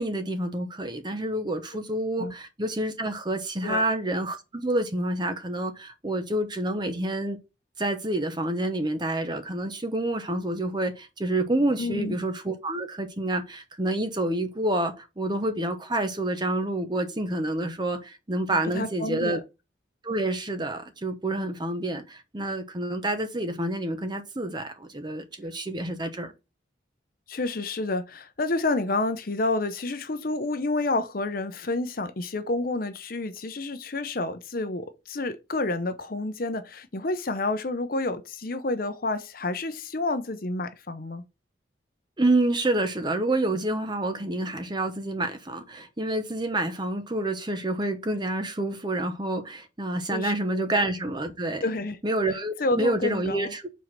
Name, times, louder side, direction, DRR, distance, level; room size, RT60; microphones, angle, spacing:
voice 1, 0.0-7.4 7.8-19.4 20.0-26.3 42.2-51.8 52.0-53.7, right 1 dB, 25° right, 0.8 m, -28 dB
voice 2, 11.8-12.1 18.5-19.4 27.3-41.2 50.1-50.7 51.6-52.0 52.6-53.5, left 2 dB, 50° left, 0.7 m, -29 dB
4.8 x 4.0 x 5.8 m
head